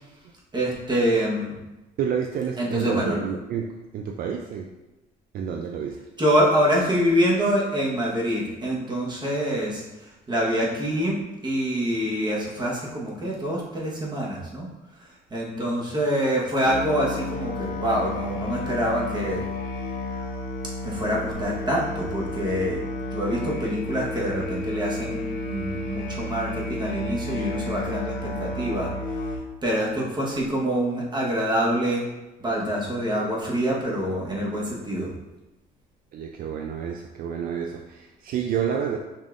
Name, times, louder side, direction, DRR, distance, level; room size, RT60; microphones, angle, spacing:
voice 1, 0.5-1.6 2.6-3.2 6.2-14.7 15.0-19.4 20.8-22.8 23.1-28.9 29.2-29.3 29.6-32.0 32.4-35.1, equal, 25° right, -4 dB, 1.2 m, -25 dB
voice 2, 2.0-4.7 5.3-6.0 36.1-39.0, right 7 dB, 60° right, 3 dB, 0.4 m, -29 dB
Musical instrument, 16.6-29.4, left 2 dB, 60° left, 0.9 m, -32 dB
5.3 x 3.6 x 2.5 m, 1.0 s
cardioid pair, 110°, 17 cm